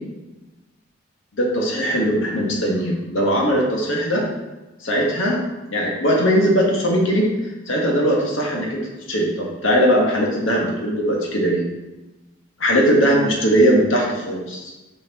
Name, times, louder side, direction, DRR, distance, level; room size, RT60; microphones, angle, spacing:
voice 1, 1.3-4.2 4.8-5.4 5.7-7.2 7.7-8.8 9.1-11.6 12.6-14.7, equal, 80° left, -1 dB, 1.6 m, -19 dB
6.4 x 4.5 x 4.2 m, 1.1 s
head